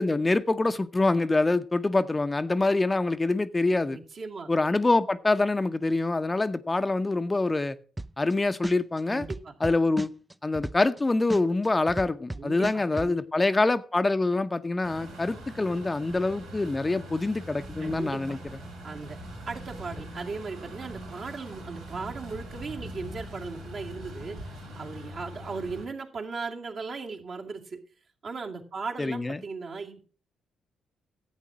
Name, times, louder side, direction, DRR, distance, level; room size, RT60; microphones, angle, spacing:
voice 1, 0.0-4.0 4.5-7.8 8.2-9.2 9.6-10.1 10.4-18.4 29.0-29.4, left 2 dB, 25° left, 0.8 m, -25 dB
voice 2, 3.9-4.5 9.0-9.5 12.3-13.2 17.8-18.4 18.8-19.2 19.5-27.8 28.2-30.0, right 4 dB, 55° right, 2.3 m, -37 dB
sound 1, 8.0-8.3 8.6-11.0 11.3-13.1, right 1 dB, 15° right, 0.5 m, -34 dB
Truck, 14.8-25.9, equal, 85° right, 4.1 m, -42 dB
11.5 x 8.3 x 6.2 m
hypercardioid pair, 45°, 0 cm